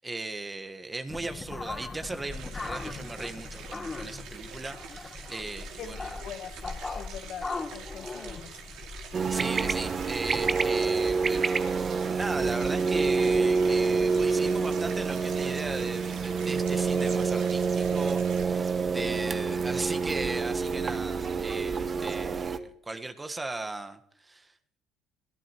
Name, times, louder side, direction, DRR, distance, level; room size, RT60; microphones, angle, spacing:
voice 1, 0.0-6.1 8.0-8.1 9.3-24.8, right 2 dB, 20° right, 8 dB, 1.4 m, -37 dB
sound 1, 1.1-10.5, left 3 dB, 25° left, 2.6 m, -39 dB
sound 2, 2.3-18.4, right 7 dB, 65° right, 2.5 m, -46 dB
voice 2, 5.8-8.5 19.1-19.6, left 8 dB, 60° left, 10 dB, 1.1 m, -44 dB
sound 3, 9.1-22.6, right 5 dB, 35° right, 1.0 m, -27 dB
22.5 x 14.0 x 3.1 m, 0.67 s
hypercardioid pair, 60°, 0 cm